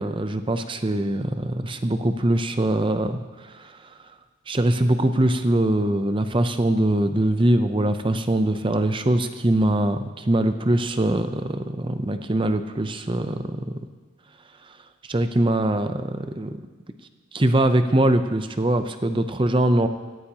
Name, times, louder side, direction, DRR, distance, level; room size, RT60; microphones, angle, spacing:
voice 1, 0.0-3.7 4.5-13.6 15.1-16.5 17.3-19.9, right 1 dB, 25° right, 9 dB, 0.6 m, -22 dB
17.0 x 14.5 x 2.9 m, 1.4 s
head